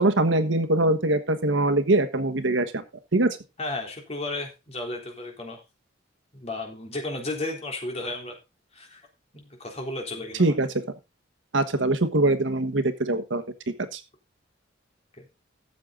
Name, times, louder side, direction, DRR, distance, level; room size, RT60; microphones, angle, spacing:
voice 1, 0.0-2.8 3.1-3.4 10.4-10.7 11.5-13.4 13.9-14.0, right 2 dB, 80° right, 9 dB, 1.4 m, -22 dB
voice 2, 3.6-5.6 6.3-8.4 8.7-9.0 9.3-10.6, left 2 dB, 35° left, 1 dB, 3.7 m, -33 dB
13.5 x 7.4 x 3.8 m, 0.25 s
head